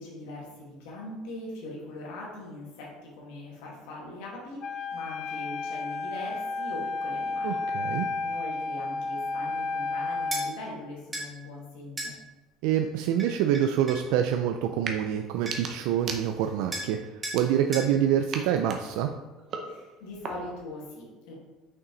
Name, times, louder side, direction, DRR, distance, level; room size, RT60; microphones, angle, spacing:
voice 1, 0.0-12.1 19.6-21.3, left 2 dB, 85° left, -4 dB, 2.1 m, -41 dB
Wind instrument woodwind instrument, 4.6-10.6, left 3 dB, 40° left, 0.4 m, -32 dB
voice 2, 7.4-8.1 12.6-19.1, right 10 dB, 70° right, 6 dB, 0.4 m, -26 dB
sound 1, 10.3-10.5 11.1-11.3 12.0-12.1 13.2-14.1 15.1-15.2 15.5-15.8 16.7-16.9 17.2-17.4 17.7-17.9, right 1 dB, 15° right, 1.3 m, -35 dB
sound 2, 14.7-15.0 15.3-16.7 17.2-17.9 18.3-20.7, right 5 dB, 35° right, 0.8 m, -39 dB
5.9 x 5.5 x 4.0 m, 1.2 s
cardioid pair, 160°, 0 cm